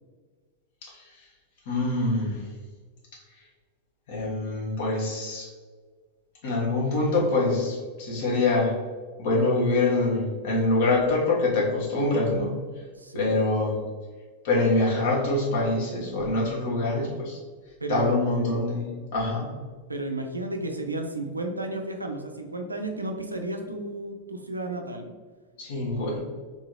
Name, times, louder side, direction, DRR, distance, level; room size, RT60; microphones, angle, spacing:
voice 1, 1.7-2.5 4.1-5.5 6.4-8.7 9.2-12.6 13.1-13.8 14.4-17.4 17.9-19.5 25.6-26.2, left 2 dB, 50° left, -4 dB, 1.5 m, -25 dB
voice 2, 13.0-13.4 17.8-18.1 19.9-25.1, right 2 dB, 80° right, 4 dB, 0.5 m, -33 dB
4.0 x 3.6 x 3.1 m, 1.5 s
figure-of-eight pair, 90°, 0 cm